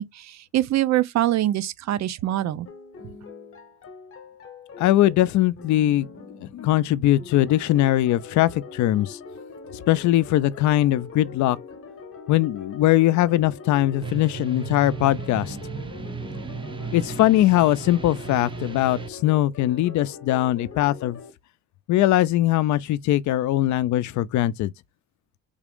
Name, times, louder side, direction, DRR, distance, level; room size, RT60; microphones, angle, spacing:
voice 1, 0.0-2.7, right 13 dB, 65° right, 0.5 m, -24 dB
sound 1, 2.7-21.3, left 4 dB, 45° left, 0.9 m, -42 dB
voice 2, 4.8-6.1 6.4-9.2 9.7-11.6 12.3-15.6 16.9-21.2 21.9-24.7, left 14 dB, 70° left, 0.4 m, -21 dB
sound 2, 14.0-19.1, right 5 dB, 15° right, 0.5 m, -35 dB
3.5 x 2.5 x 3.5 m
cardioid pair, 90°, 30 cm